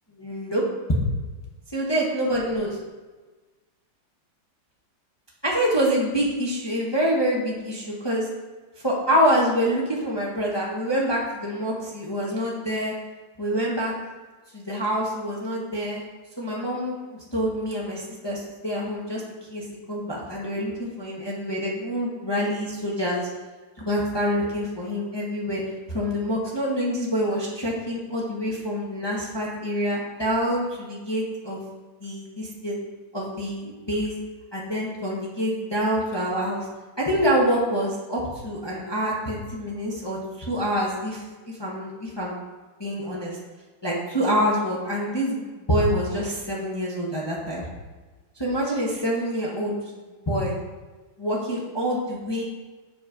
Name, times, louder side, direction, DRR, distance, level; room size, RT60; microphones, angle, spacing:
voice 1, 0.2-0.6 1.7-2.8 5.4-8.3 8.8-12.9 13.4-13.9 14.5-16.0 16.4-19.2 19.5-23.3 23.8-25.6 25.9-31.6 32.0-32.8 33.1-34.1 34.5-36.7 37.0-42.4 42.8-43.4 43.8-47.7 48.4-49.8 50.3-50.5 51.2-52.4, equal, 30° left, -4 dB, 0.4 m, -26 dB
7.3 x 4.0 x 5.0 m, 1.3 s
omnidirectional pair, 2.4 m